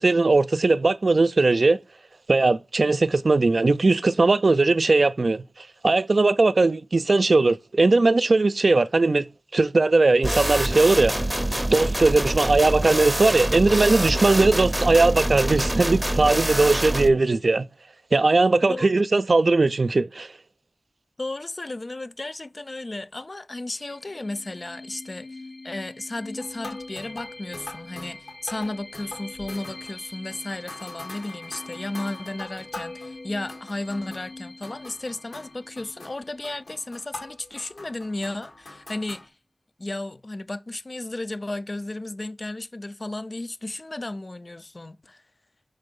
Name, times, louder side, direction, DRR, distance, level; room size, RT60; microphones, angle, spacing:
voice 1, 0.0-1.8 2.3-9.3 9.5-11.1 11.7-17.6 18.1-20.3, right 3 dB, 65° right, 0.3 m, -19 dB
sound 1, 10.2-17.1, right 1 dB, 10° right, 0.6 m, -25 dB
voice 2, 21.2-25.4 25.6-39.3 39.8-45.2, left 2 dB, 45° left, 0.4 m, -34 dB
sound 2, 23.8-37.2, left 2 dB, 65° left, 0.8 m, -44 dB
sound 3, 26.4-34.4 34.6-39.3, left 2 dB, 85° left, 1.8 m, -42 dB
5.4 x 3.8 x 5.2 m
cardioid pair, 40°, 0 cm